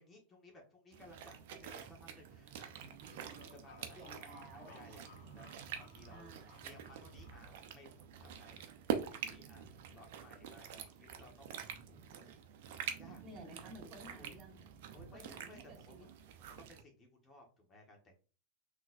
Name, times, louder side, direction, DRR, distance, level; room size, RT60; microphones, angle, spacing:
voice 1, 0.0-2.7 3.5-5.5 5.8-6.3 6.6-11.5 11.9-12.3 13.0-13.2 14.1-14.4 14.9-16.1 16.4-18.2, left 1 dB, 25° left, 1 dB, 1.3 m, -59 dB
sound 1, 0.9-16.8, right 8 dB, 60° right, 0.6 m, -46 dB
sound 2, 2.7-7.8, left 4 dB, 60° left, 1.5 m, -62 dB
voice 2, 3.9-4.7 6.1-6.7 13.2-14.7 14.9-16.1, right 1 dB, 30° right, 1 dB, 2.0 m, -54 dB
3.8 x 3.1 x 2.6 m, 0.36 s
hypercardioid pair, 105°, 0 cm